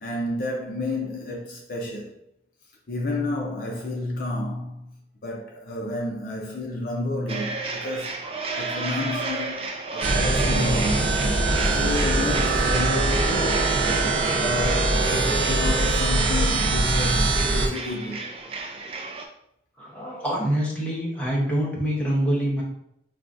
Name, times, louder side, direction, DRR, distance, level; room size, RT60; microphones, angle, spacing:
voice 1, 0.0-2.1 2.9-4.9 5.2-8.2 8.5-11.2 11.7-13.8 14.4-18.2, left 2 dB, 45° left, 0.5 m, -30 dB
sound 1, 7.3-19.3, right 3 dB, 30° right, 0.4 m, -33 dB
sound 2, 10.0-17.7, right 2 dB, 80° right, 0.6 m, -22 dB
voice 2, 19.8-22.6, equal, 5° left, 0.8 m, -25 dB
5.5 x 2.3 x 2.5 m
head